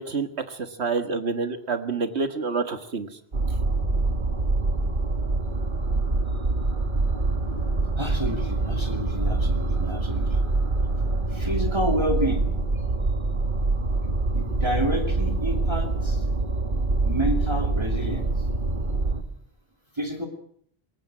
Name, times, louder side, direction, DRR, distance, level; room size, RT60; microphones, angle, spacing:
voice 1, 0.0-3.1, right 4 dB, 85° right, 9 dB, 1.9 m, -28 dB
sound 1, 3.3-19.2, right 3 dB, 50° right, 1.8 m, -25 dB
voice 2, 8.0-10.4 11.3-12.4 14.3-16.2 17.0-18.3 19.9-20.3, equal, 25° right, 3 dB, 2.8 m, -29 dB
21.5 x 18.0 x 7.5 m, 0.63 s
omnidirectional pair, 1.1 m